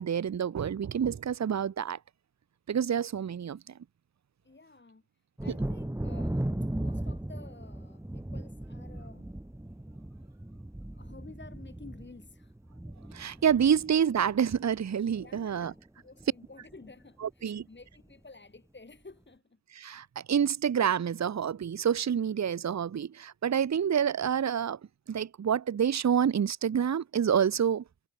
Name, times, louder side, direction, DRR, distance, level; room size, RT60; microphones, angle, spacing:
voice 1, 0.0-2.0 2.7-3.7 13.1-15.7 17.2-17.6 19.7-24.8 25.1-27.8, right 8 dB, 40° right, 1.2 m, -28 dB
voice 2, 4.4-5.0 5.4-9.3 10.3-10.4 10.9-12.6 13.4-13.5 15.2-19.6, left 3 dB, 25° left, 4.1 m, -52 dB
Thunder, 5.4-14.8 15.1-15.8 16.2-16.3 16.7-16.9, right 1 dB, 5° right, 1.8 m, -37 dB
hypercardioid pair, 45°, 40 cm